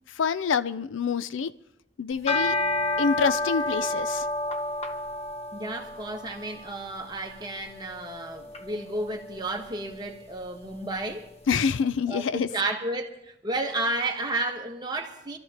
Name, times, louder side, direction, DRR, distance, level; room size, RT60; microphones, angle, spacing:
voice 1, 0.2-1.5 2.0-2.5 3.0-4.3 11.5-12.5, left 6 dB, 85° left, 0.4 m, -26 dB
sound 1, 2.1-11.5, left 2 dB, 35° left, 1.0 m, -32 dB
voice 2, 5.5-11.3 12.1-15.4, right 2 dB, 20° right, 1.3 m, -32 dB
27.0 x 13.0 x 2.9 m
head